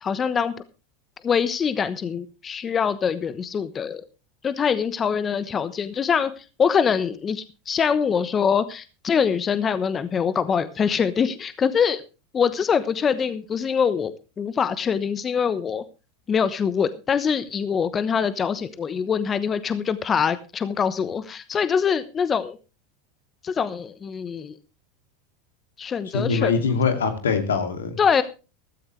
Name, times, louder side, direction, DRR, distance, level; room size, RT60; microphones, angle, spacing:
voice 1, 0.0-0.5 1.2-4.0 4.4-12.0 12.3-14.1 14.4-15.8 16.3-22.6 23.4-24.6 25.8-26.5 28.0-28.2, left 6 dB, 30° left, 14 dB, 1.0 m, -24 dB
voice 2, 26.1-28.2, left 5 dB, 90° left, 7 dB, 2.6 m, -23 dB
15.0 x 13.5 x 3.3 m, 0.31 s
hypercardioid pair, 95°, 0 cm